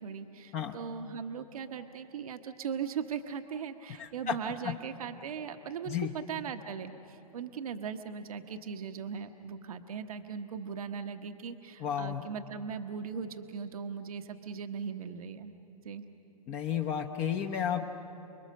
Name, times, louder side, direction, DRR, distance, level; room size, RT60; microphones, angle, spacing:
voice 1, 0.0-15.5 15.8-16.1, right 6 dB, 70° right, 7 dB, 1.1 m, -39 dB
voice 2, 4.0-4.3 5.9-6.1 11.8-12.2 16.5-17.8, left 8 dB, 35° left, 4 dB, 1.1 m, -32 dB
29.5 x 21.5 x 6.6 m, 2.8 s
hypercardioid pair, 120°, 19 cm